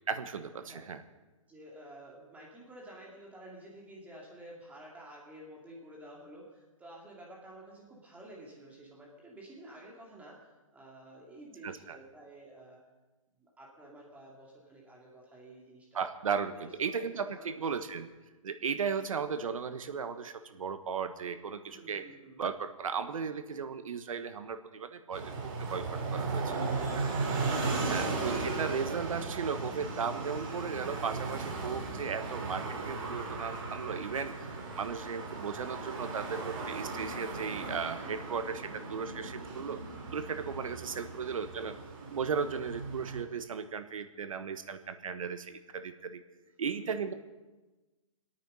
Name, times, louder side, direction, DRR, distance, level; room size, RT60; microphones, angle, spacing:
voice 1, 0.1-1.0 11.6-12.0 15.9-18.1 18.4-22.0 22.4-26.4 26.9-27.1 27.9-34.3 34.8-39.8 40.1-41.8 42.1-46.2 46.6-47.1, right 6 dB, 80° right, 9 dB, 1.3 m, -36 dB
voice 2, 1.5-12.8 13.4-16.0 16.5-17.8 21.7-22.4 26.1-28.0 40.6-41.3 46.6-47.1, right 1 dB, 10° right, -3 dB, 2.5 m, -51 dB
sound 1, 25.1-43.2, right 3 dB, 40° right, 3.4 m, -36 dB
24.5 x 9.0 x 5.5 m, 1.2 s
hypercardioid pair, 150°, 17 cm